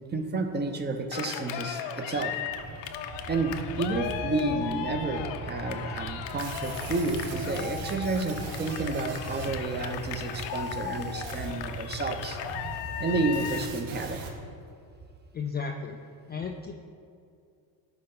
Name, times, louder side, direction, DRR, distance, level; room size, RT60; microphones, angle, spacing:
voice 1, 0.1-2.3 3.3-12.4 13.0-14.2, right 3 dB, 20° right, 6 dB, 0.7 m, -30 dB
Cheering, 1.1-13.8, left 9 dB, 65° left, 0.7 m, -37 dB
sound 1, 2.1-14.4, right 3 dB, 40° right, 1.5 m, -41 dB
sound 2, 6.3-14.3, right 5 dB, 80° right, 1.3 m, -45 dB
voice 2, 15.3-16.0 16.3-16.7, left 5 dB, 25° left, 3 dB, 0.3 m, -34 dB
11.5 x 4.3 x 3.8 m, 2.4 s
supercardioid pair, 100°, 46 cm